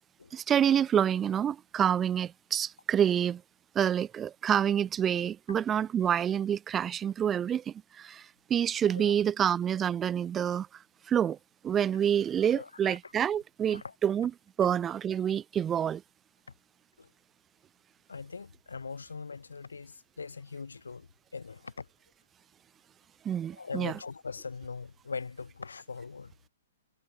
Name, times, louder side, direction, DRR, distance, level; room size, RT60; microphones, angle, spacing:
voice 1, 0.3-3.4 3.7-10.7 11.1-11.4 11.6-14.3 14.6-16.0 23.2-23.9, right 9 dB, 20° right, 0.5 m, -27 dB
voice 2, 12.5-13.1 13.7-13.9 17.0-17.1 18.1-21.9 23.5-26.5, left 4 dB, 85° left, 4.5 m, -41 dB
hypercardioid pair, 125°, 0 cm